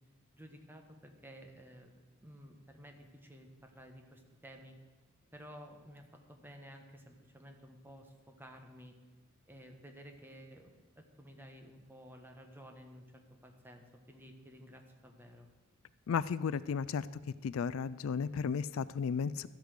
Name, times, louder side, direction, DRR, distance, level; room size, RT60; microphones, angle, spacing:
voice 1, 0.3-1.9 2.2-4.8 5.3-8.9 9.5-13.0 13.4-15.5, equal, 10° right, 4 dB, 1.3 m, -53 dB
voice 2, 16.1-17.1 17.4-19.5, left 6 dB, 75° left, 17 dB, 0.4 m, -34 dB
13.0 x 8.1 x 6.5 m, 1.3 s
head